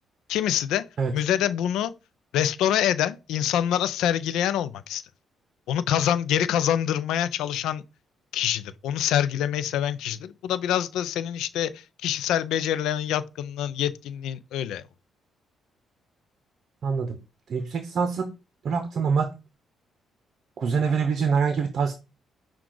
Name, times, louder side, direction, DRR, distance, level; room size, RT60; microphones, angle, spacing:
voice 1, 0.3-0.9 1.1-1.9 2.3-5.0 5.7-7.8 8.3-14.8, left 10 dB, 85° left, 0.4 m, -25 dB
voice 2, 16.8-17.2 17.5-18.3 18.6-19.3 20.6-21.9, right 5 dB, 55° right, 0.6 m, -25 dB
6.1 x 2.3 x 3.8 m
cardioid pair, 90°, 0 cm